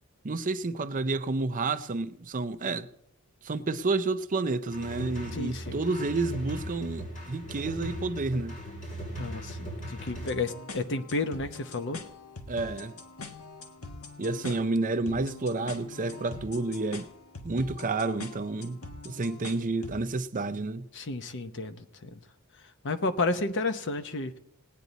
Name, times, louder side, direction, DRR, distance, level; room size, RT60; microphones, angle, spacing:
voice 1, 0.2-2.9 3.4-8.6 12.5-12.9 14.2-17.1 17.4-18.8 19.0-20.9, right 3 dB, 40° right, 0.6 m, -30 dB
sound 1, 4.7-10.3, right 1 dB, 40° left, 4.7 m, -39 dB
voice 2, 5.3-5.8 9.2-12.0 14.4-14.5 20.9-22.2 22.8-24.4, left 3 dB, 55° left, 0.9 m, -32 dB
sound 2, 10.1-20.1, left 2 dB, 75° left, 1.3 m, -44 dB
19.5 x 9.2 x 4.1 m
head